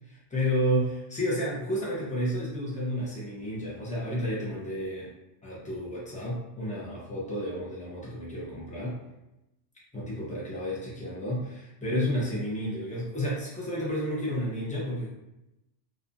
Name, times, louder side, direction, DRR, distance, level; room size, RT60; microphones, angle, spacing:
voice 1, 0.1-5.1 5.4-9.0 9.9-15.1, equal, 10° left, -7 dB, 0.6 m, -31 dB
2.6 x 2.4 x 2.4 m, 0.92 s
omnidirectional pair, 1.2 m